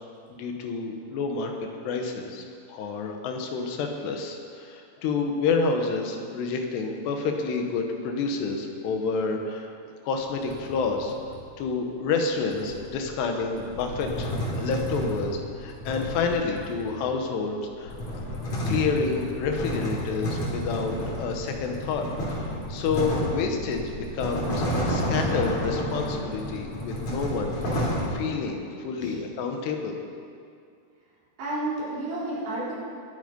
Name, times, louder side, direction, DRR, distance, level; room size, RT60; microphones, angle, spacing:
voice 1, 0.3-1.6 1.8-9.7 10.0-11.2 11.6-18.0 18.7-27.6 28.1-30.0, left 4 dB, 80° left, 3 dB, 3.3 m, -29 dB
sound 1, 10.2-11.5 12.5-17.1 17.6-28.1, equal, 45° left, 4.0 m, -31 dB
voice 2, 28.9-29.2 31.4-32.7, right 2 dB, 75° right, -8 dB, 5.9 m, -32 dB
21.0 x 9.1 x 5.3 m, 2.3 s
omnidirectional pair, 4.9 m